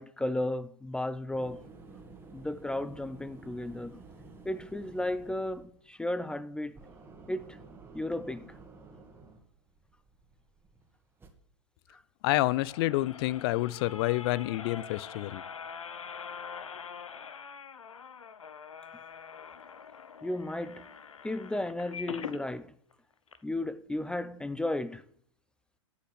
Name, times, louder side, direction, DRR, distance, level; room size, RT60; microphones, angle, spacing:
voice 1, 0.0-1.6 2.3-4.0 4.4-6.8 7.3-7.6 7.9-8.5 20.2-20.8 21.2-22.7 23.4-25.0, left 1 dB, 5° left, 0.4 m, -34 dB
sound 1, 0.9-11.3, right 3 dB, 15° right, 1.9 m, -52 dB
voice 2, 12.2-15.4, left 18 dB, 50° left, 0.6 m, -28 dB
sound 2, 12.5-22.4 22.9-23.0 23.3-23.4, left 6 dB, 90° left, 0.9 m, -44 dB
12.0 x 5.8 x 8.3 m
hypercardioid pair, 110°, 16 cm